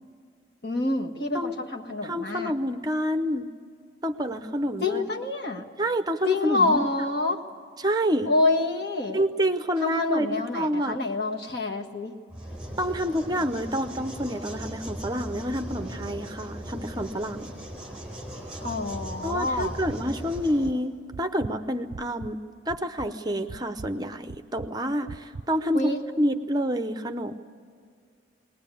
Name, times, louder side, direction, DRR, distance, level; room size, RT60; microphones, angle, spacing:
voice 1, 0.6-2.5 4.8-5.7 6.2-7.4 8.2-9.2 9.8-12.1 18.6-19.7 25.7-26.0, left 2 dB, 60° left, 1 dB, 1.6 m, -27 dB
voice 2, 2.0-3.5 4.0-5.0 5.8-6.8 7.8-8.3 9.1-11.0 12.8-17.5 19.2-22.4 22.7-25.9 26.2-27.4, equal, 20° right, 8 dB, 0.7 m, -28 dB
sound 1, 12.3-20.7, right 1 dB, 5° right, 4.4 m, -38 dB
sound 2, 19.6-20.0 20.3-20.7 21.1-22.4 22.7-23.1 23.5-23.9 24.3-24.7 25.1-25.5, right 4 dB, 60° right, 0.5 m, -39 dB
21.0 x 20.0 x 8.4 m, 2.1 s
head